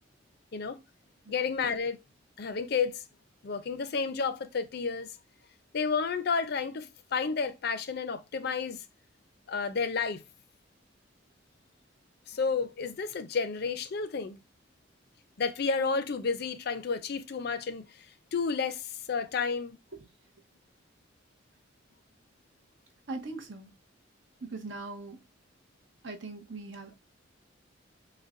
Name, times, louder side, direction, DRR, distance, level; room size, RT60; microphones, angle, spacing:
voice 1, 1.3-2.0 2.4-3.0 3.4-5.1 5.7-8.8 9.5-10.2 12.3-14.4 15.4-17.9 18.3-19.8, left 5 dB, 55° left, 0.5 m, -31 dB
voice 2, 23.1-23.7 24.4-25.2 26.0-26.9, right 3 dB, 65° right, 0.9 m, -40 dB
6.3 x 2.1 x 2.5 m
head